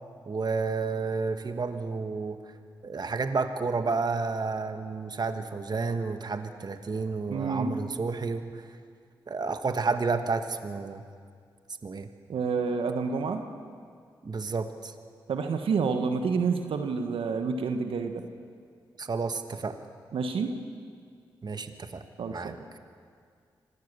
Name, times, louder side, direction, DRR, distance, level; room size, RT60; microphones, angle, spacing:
voice 1, 0.3-2.4 2.8-8.5 9.3-11.0 11.8-12.1 14.2-14.9 19.0-19.8 21.4-22.0 22.3-22.5, right 4 dB, 50° right, 8 dB, 1.6 m, -31 dB
voice 2, 7.3-7.8 12.3-13.4 15.3-18.2 20.1-20.5 22.2-22.6, right 5 dB, 75° right, 6 dB, 1.4 m, -28 dB
25.0 x 18.5 x 6.9 m, 2.1 s
supercardioid pair, 40°, 9 cm